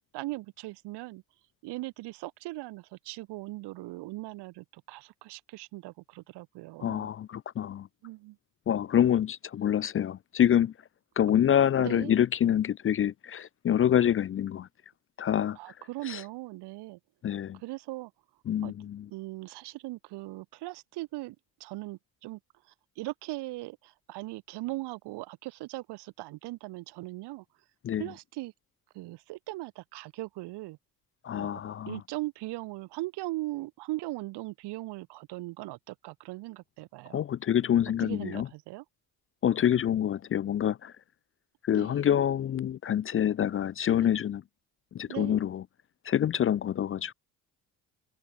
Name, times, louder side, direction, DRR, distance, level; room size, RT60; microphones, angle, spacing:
voice 1, 0.1-1.2 1.6-7.1 8.0-8.4 11.8-12.2 15.6-17.0 17.6-18.1 18.6-18.7 19.1-21.4 21.6-22.4 23.0-27.4 28.0-28.5 28.9-30.8 31.3-31.6 31.9-37.2 38.0-38.8 41.7-42.1 44.0-44.1 45.1-45.4, right 20 dB, 80° right, 1.9 m, -39 dB
voice 2, 6.8-7.9 8.7-10.7 11.2-14.7 15.2-15.6 16.1-16.2 17.2-17.6 18.5-19.1 27.8-28.0 31.2-32.0 37.1-38.5 39.4-40.9 41.6-44.4 44.9-45.6 46.1-47.1, left 10 dB, 35° left, 0.4 m, -26 dB
supercardioid pair, 70°, 40 cm